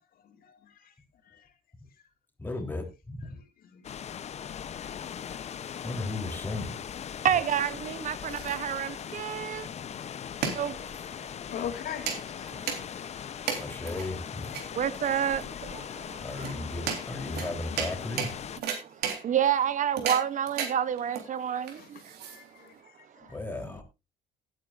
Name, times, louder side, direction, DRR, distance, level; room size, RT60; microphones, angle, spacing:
voice 1, 2.4-3.3 5.8-6.8 13.6-14.5 16.2-18.3 23.3-23.8, left 2 dB, 10° left, 3.4 m, -35 dB
sound 1, 3.8-18.6, left 8 dB, 40° left, 0.7 m, -40 dB
voice 2, 7.2-9.7 10.5-10.8 14.7-16.5 18.7-22.2 23.2-23.3, right 9 dB, 50° right, 0.8 m, -29 dB
sound 2, 7.9-22.8, right 7 dB, 70° right, 3.6 m, -37 dB
voice 3, 11.4-12.1 13.3-13.4 14.6-14.7 16.1-16.3 21.8-21.9 22.2-22.7 23.3-23.4, left 9 dB, 60° left, 2.6 m, -39 dB
17.5 x 9.1 x 2.5 m
cardioid pair, 110°, 17 cm